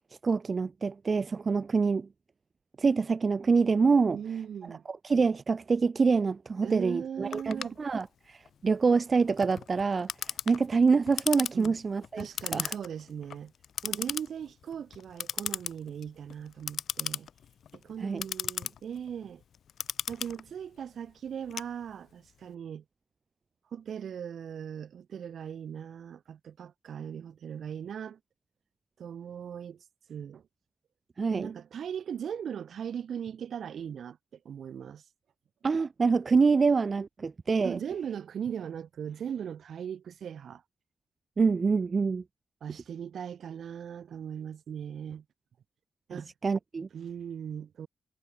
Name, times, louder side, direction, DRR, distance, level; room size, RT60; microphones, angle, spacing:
voice 1, 0.2-2.1 2.8-4.2 4.9-12.3 12.5-12.7 18.0-18.3 31.2-31.5 35.6-37.8 41.4-42.2 46.1-46.9, right 4 dB, 40° right, 2.0 m, -26 dB
voice 2, 4.1-4.8 6.6-7.8 11.5-11.8 12.2-13.5 13.8-17.3 17.7-19.4 20.1-22.8 23.7-28.2 29.0-29.8 30.1-30.4 31.3-34.2 34.4-35.0 37.6-40.6 42.6-45.2 46.1-46.3 46.9-47.9, right 8 dB, 70° right, 6.5 m, -39 dB
Clock, 7.3-22.3, left 8 dB, 75° left, 2.1 m, -38 dB
cardioid pair, 95°, 0 cm